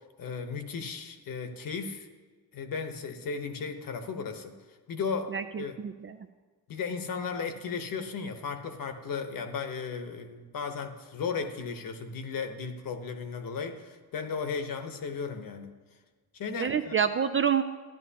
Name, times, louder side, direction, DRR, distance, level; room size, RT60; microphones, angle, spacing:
voice 1, 0.2-2.1 2.5-4.5 4.9-5.3 5.6-5.7 6.7-15.7 16.3-17.0, left 5 dB, 55° left, 6 dB, 1.1 m, -35 dB
voice 2, 5.3-6.2 16.6-17.6, right 7 dB, 30° right, 9 dB, 0.4 m, -27 dB
13.5 x 10.5 x 2.8 m, 1.4 s
cardioid pair, 110°, 42 cm